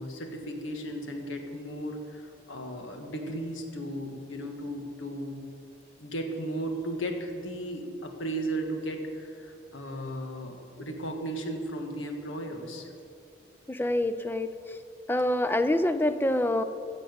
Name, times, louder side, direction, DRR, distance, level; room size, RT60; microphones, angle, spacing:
voice 1, 0.0-5.4 6.0-12.9, right 1 dB, 90° left, 3 dB, 1.6 m, -35 dB
voice 2, 13.7-14.8 15.1-16.6, left 1 dB, 10° left, 10 dB, 0.4 m, -26 dB
16.0 x 6.0 x 8.1 m, 2.5 s
head